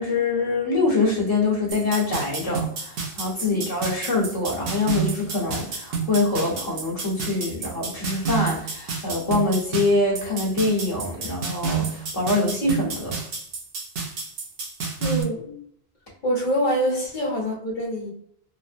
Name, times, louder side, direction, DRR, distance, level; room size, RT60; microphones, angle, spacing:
voice 1, 0.0-13.1, left 2 dB, 35° left, -6 dB, 1.1 m, -24 dB
sound 1, 1.7-15.2, right 5 dB, 60° right, 0.8 m, -30 dB
voice 2, 15.0-15.6 16.2-18.1, equal, 50° left, -3 dB, 1.0 m, -25 dB
3.1 x 2.0 x 2.5 m, 0.66 s
omnidirectional pair, 1.2 m